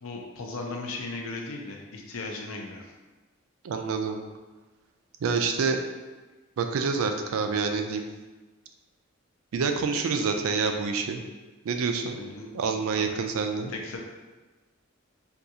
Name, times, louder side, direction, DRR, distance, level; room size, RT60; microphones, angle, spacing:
voice 1, 0.0-2.9 12.1-12.5 12.9-13.2 13.7-14.0, left 3 dB, 75° left, 1 dB, 0.5 m, -37 dB
voice 2, 3.6-4.2 5.2-5.8 6.6-8.0 9.5-11.2 11.6-12.2 12.5-13.7, right 5 dB, 80° right, 5 dB, 0.3 m, -27 dB
3.6 x 2.3 x 2.7 m, 1.2 s
head